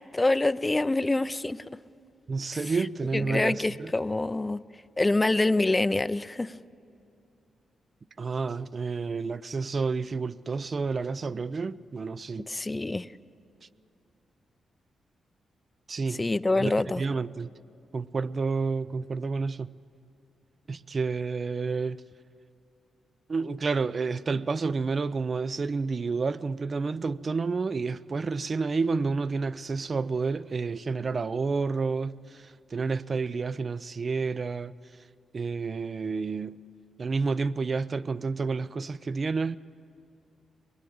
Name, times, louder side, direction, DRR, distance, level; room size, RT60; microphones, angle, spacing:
voice 1, 0.1-1.6 3.1-4.6 5.0-6.5 12.5-13.1 16.2-17.0, left 2 dB, 20° left, 0.6 m, -25 dB
voice 2, 2.3-3.9 8.2-12.5 15.9-16.2 16.5-17.5 17.9-19.7 20.7-22.0 23.3-34.7 35.3-36.6 37.0-39.6, right 4 dB, 40° right, 0.6 m, -30 dB
23.0 x 20.5 x 8.7 m
cardioid pair, 85°, 0 cm